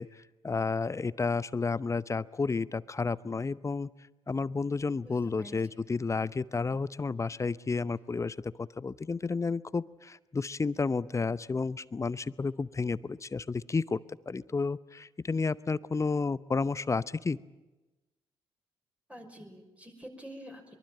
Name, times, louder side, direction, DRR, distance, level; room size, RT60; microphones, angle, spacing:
voice 1, 0.0-3.9 4.3-17.4, left 4 dB, 25° left, 20 dB, 0.8 m, -31 dB
voice 2, 5.0-5.8 19.1-20.8, equal, 10° right, 3 dB, 5.8 m, -48 dB
23.5 x 23.0 x 9.0 m, 1.1 s
figure-of-eight pair, 45°, 13 cm